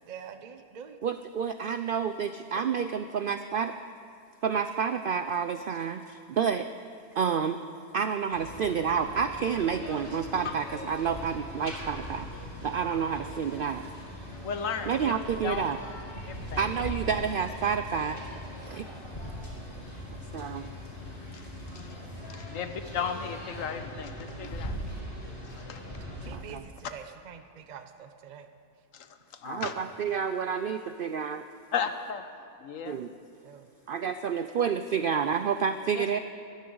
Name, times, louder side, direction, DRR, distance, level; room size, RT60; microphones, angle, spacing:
voice 1, 0.1-1.0 22.5-22.7 26.2-28.5 33.4-33.7, right 7 dB, 40° right, 8 dB, 0.7 m, -46 dB
voice 2, 1.0-3.7 4.4-6.7 7.1-7.6 7.9-12.3 12.6-13.9 14.9-15.8 16.6-18.2 18.6-18.9 20.3-20.7 24.4-24.5 26.3-26.6 29.4-31.5 32.8-33.1 33.9-36.2, right 7 dB, 90° right, 9 dB, 0.4 m, -29 dB
sound 1, 8.3-26.3, equal, 40° left, 2.4 m, -40 dB
voice 3, 14.4-15.1 15.4-15.7 16.3-16.6 21.3-21.4 21.7-21.9 22.3-24.8 25.7-25.8 28.9-29.1 29.4-29.7 31.7-32.2 32.6-33.0 35.9-36.1, left 7 dB, 70° left, 9 dB, 1.2 m, -34 dB
22.0 x 13.5 x 3.9 m, 2.3 s
omnidirectional pair, 1.5 m